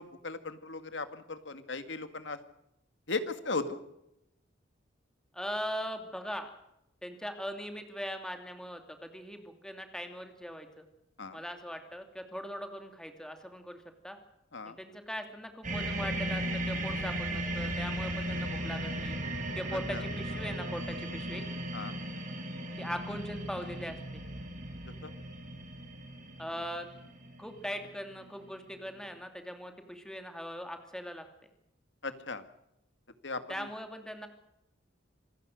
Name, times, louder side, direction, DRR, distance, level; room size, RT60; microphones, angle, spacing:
voice 1, 0.0-2.4 3.1-3.8 11.2-11.4 14.5-14.8 19.7-20.0 21.7-21.9 25.0-25.1 32.0-32.4 33.2-33.7, left 3 dB, 70° left, 10 dB, 1.9 m, -37 dB
voice 2, 5.3-6.5 7.0-10.9 11.3-14.2 14.6-19.2 19.6-21.5 22.8-24.2 26.4-26.9 27.4-31.5 33.5-34.3, equal, 5° left, 6 dB, 2.5 m, -40 dB
sound 1, 15.6-28.5 28.7-29.0, right 1 dB, 45° right, 6.0 m, -37 dB
27.0 x 16.5 x 6.4 m, 0.85 s
head